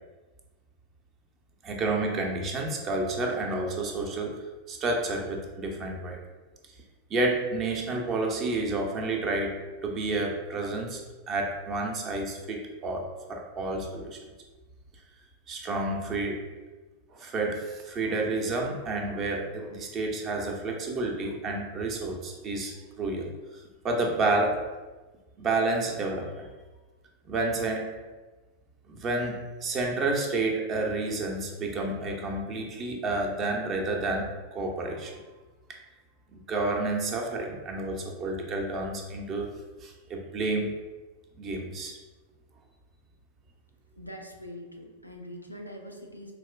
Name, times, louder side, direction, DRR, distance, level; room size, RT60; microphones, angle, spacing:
voice 1, 1.6-6.2 7.1-11.0 11.3-14.2 15.5-16.5 17.1-24.6 25.4-26.5 27.3-27.9 28.9-34.3 34.5-35.2 36.3-39.5 39.8-40.7 41.4-42.0, right 2 dB, 30° right, 1 dB, 0.5 m, -30 dB
voice 2, 44.0-46.3, equal, 90° left, 2 dB, 0.4 m, -43 dB
4.1 x 2.4 x 2.2 m, 1.3 s
figure-of-eight pair, 90°, 0 cm